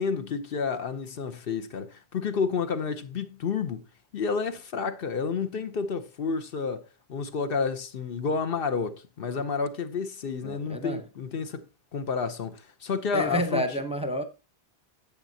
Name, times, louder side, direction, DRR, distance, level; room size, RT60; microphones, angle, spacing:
voice 1, 0.0-3.8 4.1-11.6 11.9-13.6, left 5 dB, 65° left, 0.9 m, -30 dB
voice 2, 10.4-11.0 13.1-14.2, equal, 5° right, 0.7 m, -29 dB
10.5 x 7.2 x 2.7 m
omnidirectional pair, 1.1 m